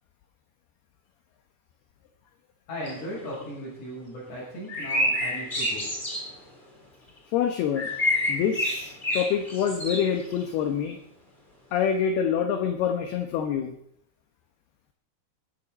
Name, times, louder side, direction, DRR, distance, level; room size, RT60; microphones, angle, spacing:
voice 1, 2.7-5.9, equal, 40° left, -6 dB, 7.7 m, -37 dB
sound 1, 2.9-3.0 3.3-3.4 4.7-6.3 7.8-10.4, left 1 dB, 10° left, 2.8 m, -28 dB
voice 2, 7.3-7.9 8.3-11.0 11.7-13.7, left 8 dB, 70° left, 5 dB, 2.6 m, -26 dB
20.0 x 15.0 x 4.1 m, 0.69 s
omnidirectional pair, 5.5 m